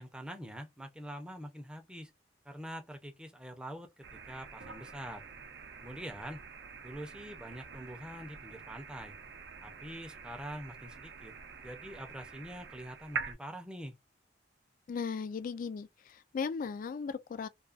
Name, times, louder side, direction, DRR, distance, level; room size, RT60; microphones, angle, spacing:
voice 1, 0.0-2.1 2.5-5.2 5.8-6.4 6.8-9.1 9.6-11.3 11.6-14.0, equal, 5° right, 0.5 m, -45 dB
sound 1, 4.0-13.4, right 5 dB, 70° right, 0.5 m, -46 dB
voice 2, 14.9-17.5, left 5 dB, 50° left, 0.3 m, -37 dB
2.3 x 2.3 x 2.4 m
head